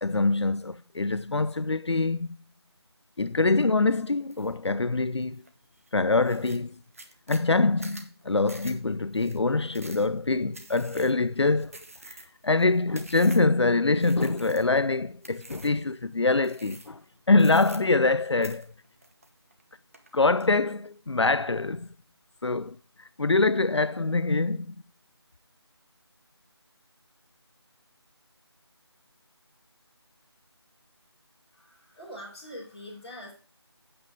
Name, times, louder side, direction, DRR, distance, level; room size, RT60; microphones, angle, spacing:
voice 1, 0.0-2.4 3.2-5.4 5.9-6.8 7.3-11.7 12.1-17.0 17.3-18.7 20.1-21.9 22.4-24.8, left 3 dB, 75° left, 0.5 m, -24 dB
sound 1, 4.3-4.6 5.0-5.5 5.9-6.0 6.2-13.6 14.0-14.8 15.2-15.8 16.4-17.0 17.3-18.2 18.4-19.6 19.9-20.5, right 2 dB, 30° right, 1.1 m, -47 dB
voice 2, 31.5-33.3, equal, 10° left, 4.4 m, -43 dB
8.8 x 6.8 x 4.9 m
figure-of-eight pair, 165°, 14 cm